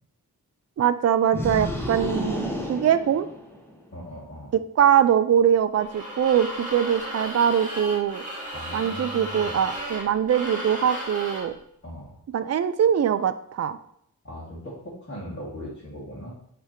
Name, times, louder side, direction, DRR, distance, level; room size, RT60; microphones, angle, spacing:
voice 1, 0.8-3.3 4.8-8.2 8.7-11.5 12.3-13.8, right 9 dB, 45° right, 11 dB, 0.5 m, -22 dB
sound 1, 1.3-3.8, left 1 dB, 5° left, 1.1 m, -31 dB
voice 2, 3.9-4.5 8.5-9.5 11.8-12.1 14.2-16.3, equal, 35° left, -8 dB, 2.1 m, -39 dB
sound 2, 5.8-11.5, right 1 dB, 20° right, 1.8 m, -35 dB
8.3 x 3.4 x 4.5 m, 0.71 s
wide cardioid pair, 130°, 35 cm